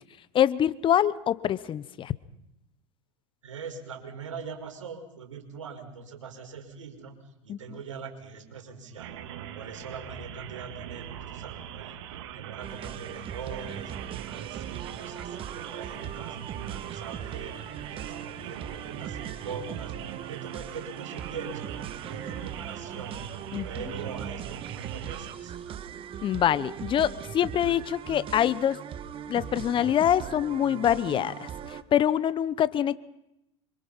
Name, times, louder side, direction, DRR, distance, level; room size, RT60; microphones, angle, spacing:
voice 1, 0.3-2.1 7.5-7.6 23.5-23.8 26.2-28.8 29.3-33.0, left 10 dB, 30° left, 17 dB, 1.1 m, -25 dB
voice 2, 3.4-7.2 7.4-9.1 9.5-12.0 12.3-16.4 16.7-17.6 17.9-23.2 23.6-25.8, right 5 dB, 85° right, 4 dB, 5.6 m, -42 dB
sound 1, 9.0-25.3, right 10 dB, 65° right, 2.8 m, -41 dB
sound 2, 12.6-31.8, right 9 dB, 35° right, 1.6 m, -40 dB
27.0 x 25.5 x 5.8 m, 0.87 s
hypercardioid pair, 95°, 16 cm